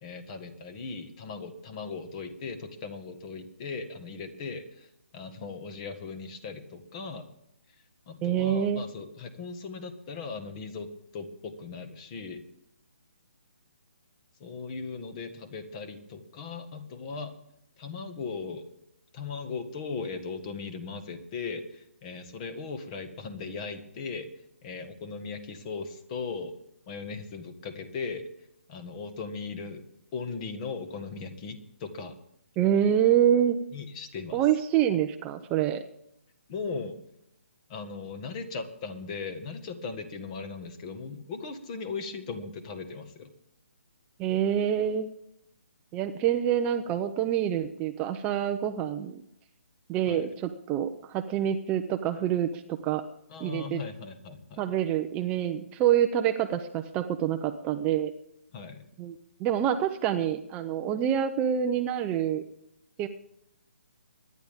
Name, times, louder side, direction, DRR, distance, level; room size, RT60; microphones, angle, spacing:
voice 1, 0.0-7.3 8.1-10.9 11.1-12.5 14.4-17.4 17.8-18.7 19.1-26.5 26.9-28.2 28.7-29.8 30.1-32.2 33.7-34.5 36.5-37.0 37.7-43.3 50.1-50.3 53.3-54.6 58.5-58.9, left 4 dB, 30° left, 8 dB, 1.7 m, -38 dB
voice 2, 8.2-8.8 32.6-33.6 34.3-35.8 44.2-45.1 45.9-49.2 49.9-53.0 53.4-53.8 54.6-58.1 59.0-62.4 63.0-63.1, right 10 dB, 20° right, 7 dB, 0.7 m, -26 dB
24.0 x 10.5 x 3.7 m, 0.78 s
hypercardioid pair, 150°, 7 cm